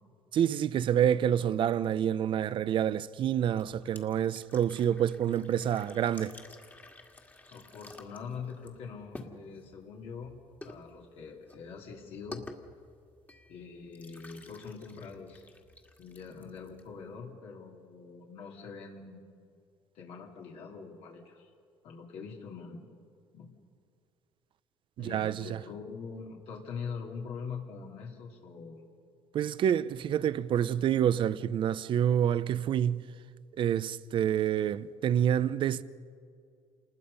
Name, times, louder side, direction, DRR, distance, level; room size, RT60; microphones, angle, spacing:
voice 1, 0.3-6.3 25.0-25.6 29.3-33.1 33.6-35.8, right 9 dB, 50° right, 0.7 m, -28 dB
sound 1, 3.5-17.2, left 2 dB, 15° left, 2.0 m, -52 dB
voice 2, 7.5-10.3 10.6-12.4 13.5-15.4 16.0-19.6 19.9-21.5 21.8-22.8 23.3-23.5 25.0-28.8, left 5 dB, 70° left, 3.2 m, -43 dB
28.0 x 20.5 x 5.5 m
cardioid pair, 120°, 11 cm